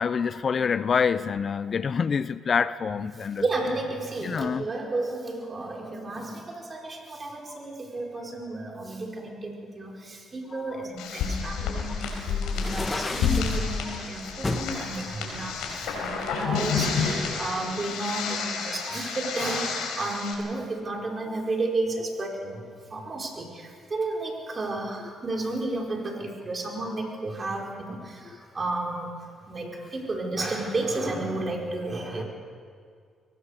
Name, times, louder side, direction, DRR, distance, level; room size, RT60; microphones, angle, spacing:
voice 1, 0.0-3.4 4.2-4.6 7.5-7.6 10.6-10.7 18.9-19.0, left 6 dB, 45° left, 15 dB, 0.6 m, -26 dB
voice 2, 3.4-22.6 22.9-29.1 29.5-32.2, right 2 dB, 35° right, 0 dB, 4.8 m, -32 dB
sound 1, 11.0-20.3, left 5 dB, 85° left, 4.7 m, -30 dB
sound 2, 12.5-13.6 14.4-14.7 15.3-16.4, left 2 dB, 20° left, 1.8 m, -32 dB
23.0 x 18.5 x 6.6 m, 2.2 s
cardioid pair, 80°, 0 cm